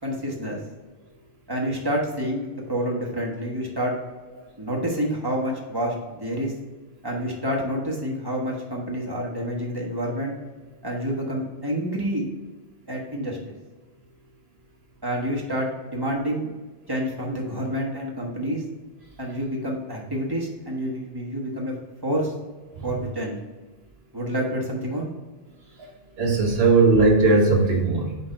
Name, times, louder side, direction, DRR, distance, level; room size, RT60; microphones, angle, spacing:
voice 1, 0.0-0.6 1.5-3.9 4.6-6.5 7.0-10.3 10.8-12.3 12.9-13.4 15.0-16.5 16.9-18.6 19.2-21.7 22.0-22.3 22.8-23.4 24.1-25.1, equal, 20° right, -3 dB, 1.3 m, -28 dB
voice 2, 26.2-28.2, right 3 dB, 60° right, 0 dB, 1.5 m, -18 dB
5.1 x 4.4 x 5.1 m, 1.2 s
omnidirectional pair, 1.2 m